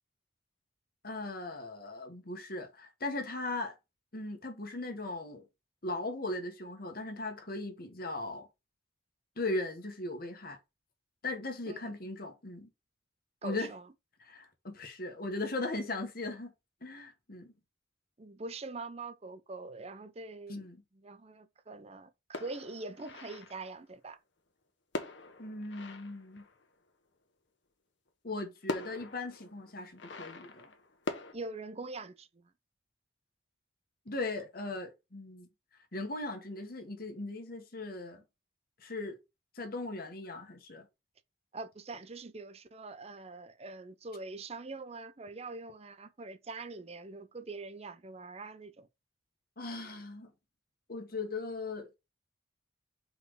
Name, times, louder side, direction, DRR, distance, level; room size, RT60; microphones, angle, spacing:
voice 1, 1.0-3.7 4.1-5.4 5.8-8.4 9.4-10.6 11.2-12.7 13.4-13.7 14.2-16.5 16.8-17.5 20.5-20.8 25.4-26.4 28.2-30.7 34.0-35.5 35.9-38.2 38.8-39.2 39.5-40.8 49.6-50.3 50.9-51.9, left 2 dB, 50° left, 1.5 m, -38 dB
voice 2, 13.4-13.9 18.2-20.7 20.9-24.2 31.3-32.5 41.5-48.9, right 3 dB, 35° right, 0.6 m, -44 dB
sound 1, 22.3-23.8 24.9-26.9 28.1-28.2 28.7-31.3, left 2 dB, 70° left, 1.2 m, -42 dB
4.8 x 4.3 x 4.8 m
head